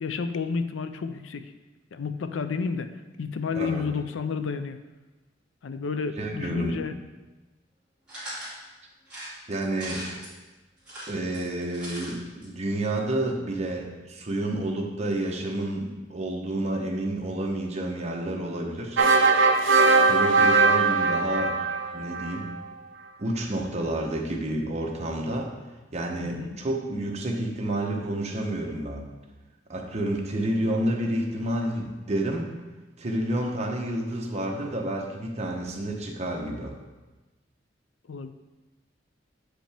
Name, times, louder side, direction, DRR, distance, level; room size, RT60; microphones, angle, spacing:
voice 1, 0.0-1.5 1.9-2.9 3.2-4.8 5.6-6.9 26.2-26.6 38.1-38.3, left 5 dB, 90° left, 10 dB, 0.4 m, -31 dB
voice 2, 3.5-3.9 6.2-6.8 9.5-10.0 11.1-19.0 20.1-21.6 21.9-22.5 23.2-25.5 25.9-29.1 29.7-32.5 33.0-36.7, right 1 dB, 35° right, 1 dB, 0.9 m, -29 dB
sound 1, 8.1-8.5 9.1-10.3 10.8-12.1 12.4-12.5 12.7-12.8, right 1 dB, 5° right, 2.1 m, -39 dB
sound 2, 19.0-22.4, right 4 dB, 90° right, 0.6 m, -20 dB
7.5 x 5.1 x 3.4 m, 1.2 s
head